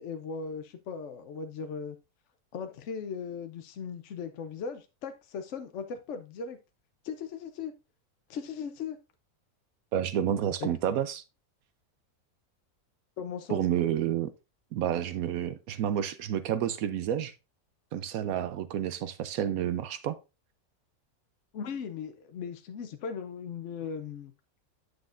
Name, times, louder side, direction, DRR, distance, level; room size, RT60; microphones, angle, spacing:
voice 1, 0.0-2.0 2.5-6.6 7.0-7.7 8.3-9.0 10.6-10.7 13.2-13.6 21.5-24.3, left 6 dB, 60° left, 0.9 m, -38 dB
voice 2, 9.9-11.2 13.5-14.3 14.7-17.3 17.9-20.2, right 10 dB, 75° right, 1.0 m, -30 dB
9.3 x 6.5 x 2.5 m
omnidirectional pair, 1.6 m